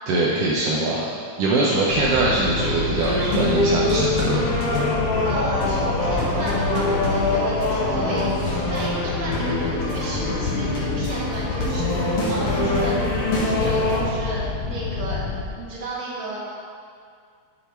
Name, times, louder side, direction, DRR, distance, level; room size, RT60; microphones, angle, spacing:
voice 1, 0.1-1.1 1.4-4.4, right 2 dB, 65° right, -4 dB, 1.6 m, -22 dB
sound 1, 1.9-15.4, left 4 dB, 90° left, 2.4 m, -29 dB
sound 2, 2.0-13.5, left 1 dB, 70° left, 2.6 m, -35 dB
sound 3, 3.0-14.0, left 2 dB, 50° left, 2.4 m, -24 dB
voice 2, 5.2-15.2 15.5-16.6, right 1 dB, 40° right, -6 dB, 2.5 m, -33 dB
9.8 x 7.1 x 4.5 m, 2.1 s
omnidirectional pair, 3.5 m